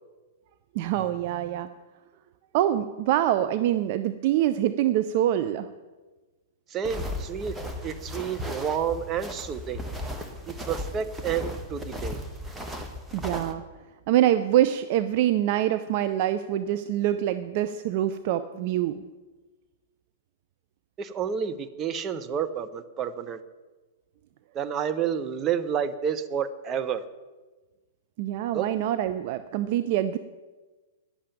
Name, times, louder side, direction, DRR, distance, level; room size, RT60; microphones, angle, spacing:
voice 1, 0.7-1.7 2.5-5.7 13.1-13.6 14.1-19.0 28.2-30.2, right 12 dB, 45° right, 11 dB, 0.5 m, -25 dB
voice 2, 6.7-7.6 7.8-9.8 10.5-12.2 21.0-23.4 24.5-27.0 28.5-28.7, right 8 dB, 25° right, 10 dB, 0.8 m, -30 dB
sound 1, 6.8-13.5, left 1 dB, 10° right, 1.4 m, -36 dB
10.0 x 7.6 x 8.4 m, 1.2 s
figure-of-eight pair, 105°, 0 cm